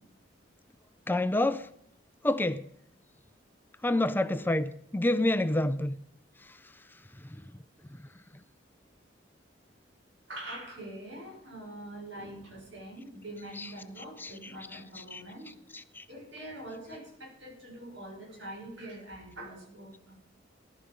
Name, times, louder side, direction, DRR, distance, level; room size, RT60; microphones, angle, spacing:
voice 1, 1.1-1.7 2.2-2.7 3.8-6.0 6.4-6.6 7.2-7.4 13.6-13.7 14.0-15.2 15.7-16.1, left 1 dB, 10° left, 0.5 m, -29 dB
voice 2, 10.3-15.5 16.1-20.2, right 1 dB, 75° right, 6.3 m, -44 dB
18.0 x 12.0 x 5.3 m
head